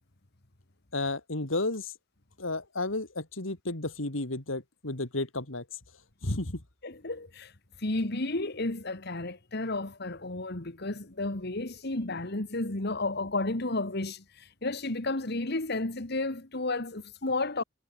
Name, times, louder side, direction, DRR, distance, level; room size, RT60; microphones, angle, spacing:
voice 1, 0.9-1.9 2.4-5.6 6.2-6.6, left 2 dB, 80° left, 3.2 m, -32 dB
voice 2, 6.8-7.5 7.8-17.6, left 2 dB, 55° left, 2.0 m, -32 dB
head